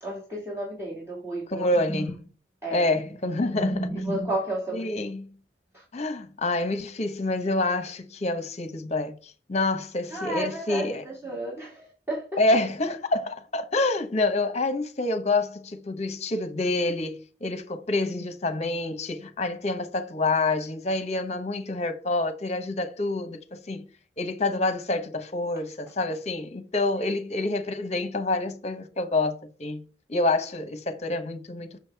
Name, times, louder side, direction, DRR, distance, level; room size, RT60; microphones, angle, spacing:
voice 1, 0.0-2.1 2.6-2.9 3.5-4.9 5.7-5.8 10.1-12.4 27.0-27.1, right 1 dB, 15° right, 2.0 m, -32 dB
voice 2, 1.5-2.1 2.7-3.9 4.7-5.3 5.9-11.0 12.4-23.9 24.2-29.8 30.1-31.8, left 2 dB, 40° left, 0.9 m, -27 dB
6.5 x 6.2 x 3.4 m
head